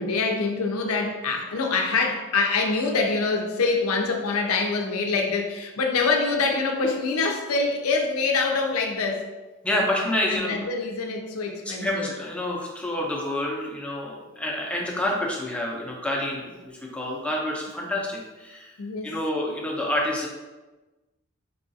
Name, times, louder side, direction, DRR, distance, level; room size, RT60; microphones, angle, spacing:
voice 1, 0.0-9.2 10.3-12.1 18.8-19.2, left 4 dB, 80° left, 2 dB, 0.5 m, -25 dB
voice 2, 9.6-10.6 11.7-18.7 19.0-20.3, left 1 dB, 5° left, -2 dB, 0.5 m, -28 dB
4.6 x 2.4 x 2.6 m, 1.1 s
head